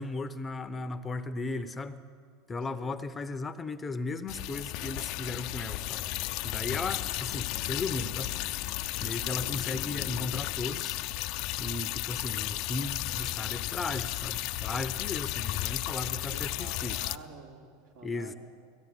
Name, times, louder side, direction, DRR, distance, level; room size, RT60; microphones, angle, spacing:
voice 1, 0.0-2.0 2.5-6.0 6.4-8.3 9.0-11.0 11.6-16.9 18.0-18.3, left 3 dB, 20° left, 11 dB, 0.8 m, -36 dB
voice 2, 2.6-3.0 8.1-8.3 16.0-18.4, right 3 dB, 65° right, 0 dB, 3.9 m, -49 dB
sound 1, 4.3-17.2, left 16 dB, 55° left, 0.6 m, -34 dB
18.0 x 15.0 x 9.7 m, 2.1 s
hypercardioid pair, 110°, 0 cm